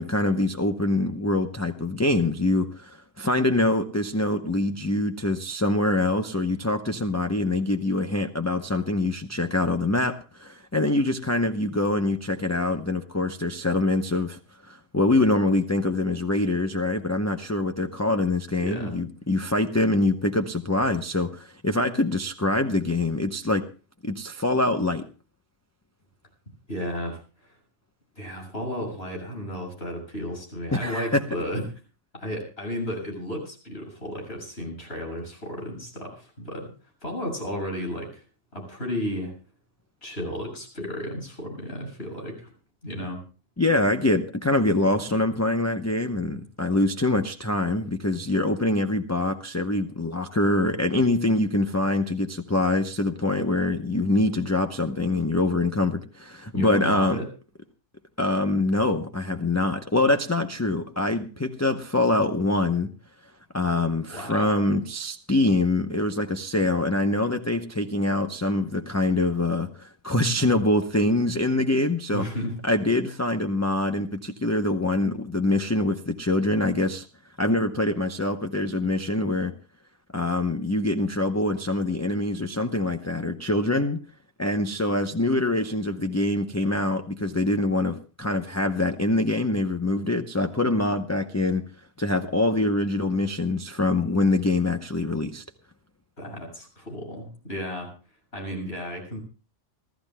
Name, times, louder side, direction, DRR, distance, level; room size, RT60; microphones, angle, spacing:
voice 1, 0.0-23.7 24.0-25.1 30.7-31.2 43.6-57.2 58.2-62.9 63.5-72.3 72.6-77.1 77.4-79.5 80.1-84.0 84.4-91.6 92.0-95.4, left 2 dB, 15° left, 5 dB, 0.6 m, -24 dB
voice 2, 18.6-19.0 26.7-27.6 28.2-31.6 32.1-36.7 37.0-38.2 38.5-39.4 40.0-42.5 42.8-43.2 56.5-57.3 64.1-64.6 72.1-72.6 96.2-97.9 98.3-99.2, equal, 55° left, 1 dB, 7.4 m, -33 dB
29.0 x 14.0 x 2.2 m, 0.35 s
omnidirectional pair, 1.3 m